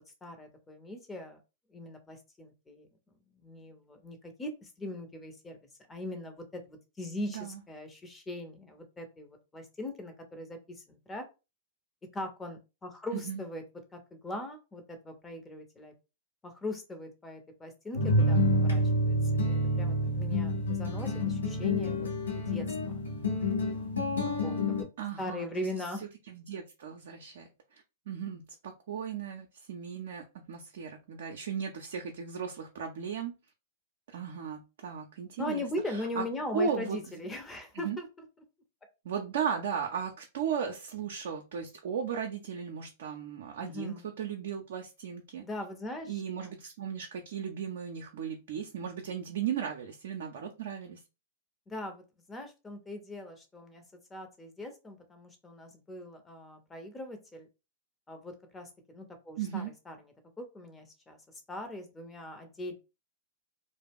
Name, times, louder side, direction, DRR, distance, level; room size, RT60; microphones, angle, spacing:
voice 1, 0.0-1.4 1.7-2.9 3.4-5.6 5.9-11.2 12.1-13.6 13.9-15.9 16.4-19.2 19.4-22.1 22.3-22.7 24.4-24.9 25.2-26.0 35.4-38.0 43.6-44.1 45.4-46.6 51.7-52.0 52.3-53.8 54.1-57.5 58.1-60.0 60.4-61.2 61.5-62.8, left 1 dB, 15° left, 6 dB, 0.7 m, -40 dB
voice 2, 7.3-7.6 13.1-13.4 25.0-25.7 26.3-33.3 34.1-36.2 36.5-37.0 37.7-38.0 39.0-45.4 46.1-51.0 59.4-59.7, right 7 dB, 65° right, 3 dB, 0.5 m, -36 dB
sound 1, 17.9-24.8, left 1 dB, 85° left, 0.8 m, -28 dB
2.3 x 2.0 x 3.4 m, 0.28 s
hypercardioid pair, 110°, 0 cm